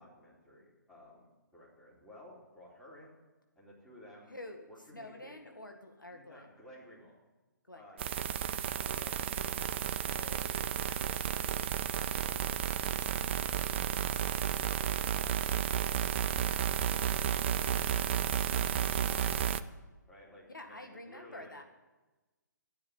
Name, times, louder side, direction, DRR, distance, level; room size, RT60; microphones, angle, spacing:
voice 1, 0.0-3.1 3.6-4.3 4.7-5.4 6.1-7.1 7.7-8.0 8.8-9.3 10.0-13.1 13.4-19.7 20.1-21.6, left 1 dB, 5° left, -7 dB, 4.0 m, -55 dB
voice 2, 4.3-6.5 7.7-8.0 8.4-8.6 20.5-21.6, left 1 dB, 85° left, 5 dB, 1.9 m, -48 dB
sound 1, 8.0-19.6, right 9 dB, 35° right, 0.5 m, -32 dB
12.5 x 9.4 x 9.4 m, 1.2 s
figure-of-eight pair, 135°, 10 cm